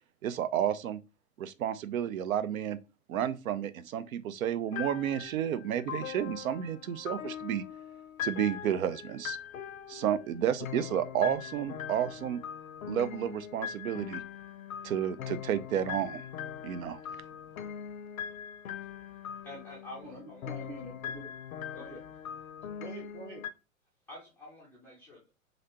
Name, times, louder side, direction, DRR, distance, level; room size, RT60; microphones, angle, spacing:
voice 1, 0.2-1.0 1.4-2.8 3.1-7.6 8.2-9.4 9.9-12.4 12.9-14.2 14.8-16.2 16.6-17.0, right 10 dB, 80° right, 0.5 m, -31 dB
sound 1, 4.7-23.5, left 9 dB, 75° left, 0.6 m, -41 dB
voice 2, 19.4-20.5 21.7-22.0 24.1-25.3, left 1 dB, 5° left, 0.3 m, -48 dB
voice 3, 20.0-21.3 21.7-22.0 22.8-23.4, right 2 dB, 50° right, 1.1 m, -45 dB
3.2 x 2.5 x 2.8 m
hypercardioid pair, 110°, 41 cm